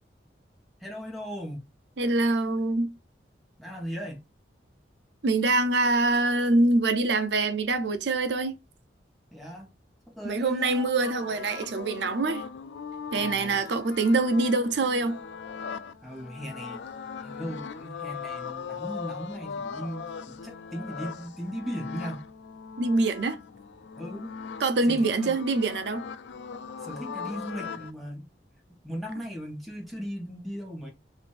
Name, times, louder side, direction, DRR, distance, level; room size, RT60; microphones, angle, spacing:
voice 1, 0.8-1.6 3.6-4.2 9.3-9.7 10.1-10.9 13.1-13.6 16.0-16.8 17.2-22.2 24.0-24.3 24.9-25.4 26.8-28.3 28.7-30.9, equal, ahead, 1.0 m, -37 dB
voice 2, 2.0-2.9 5.2-8.6 10.2-12.4 13.1-15.2 22.8-23.4 24.6-26.1, right 2 dB, 75° right, 0.6 m, -24 dB
sound 1, 11.0-27.9, left 6 dB, 80° left, 0.4 m, -39 dB
3.1 x 2.5 x 4.3 m
head